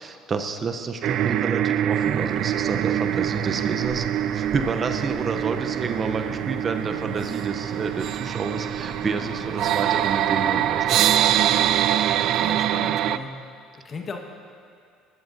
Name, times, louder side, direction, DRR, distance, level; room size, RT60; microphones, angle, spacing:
voice 1, 0.0-4.1 4.3-11.3, right 4 dB, 35° right, 6 dB, 0.8 m, -29 dB
sound 1, 1.0-13.2, right 11 dB, 60° right, 0.3 m, -24 dB
sound 2, 1.9-12.6, right 6 dB, 90° right, 1.1 m, -37 dB
voice 2, 12.2-13.3 13.7-14.2, left 4 dB, 35° left, 2 dB, 1.5 m, -36 dB
20.0 x 12.0 x 2.7 m, 2.3 s
supercardioid pair, 85°, 0 cm